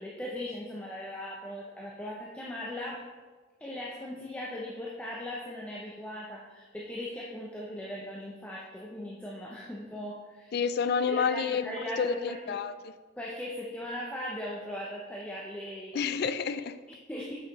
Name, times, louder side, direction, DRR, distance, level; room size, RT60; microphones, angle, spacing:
voice 1, 0.0-3.1 3.6-10.5 11.0-12.6 13.2-16.1 16.9-17.3, left 1 dB, 5° left, -4 dB, 0.6 m, -39 dB
voice 2, 10.5-12.8 15.9-16.8, left 6 dB, 55° left, 12 dB, 0.3 m, -29 dB
6.4 x 5.5 x 4.0 m, 1.3 s
head